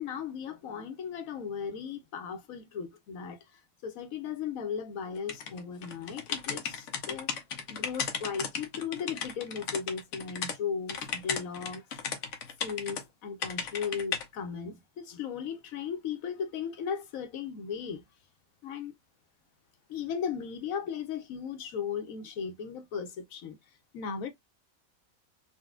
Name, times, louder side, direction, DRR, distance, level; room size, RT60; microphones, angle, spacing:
voice 1, 0.0-7.3 7.7-11.9 12.6-18.0 18.6-18.9 19.9-23.6 23.9-24.3, left 6 dB, 90° left, 1.1 m, -36 dB
sound 1, 5.3-10.6 10.9-13.0 13.4-14.2, left 6 dB, 70° left, 1.0 m, -35 dB
4.0 x 2.2 x 2.3 m
omnidirectional pair, 1.4 m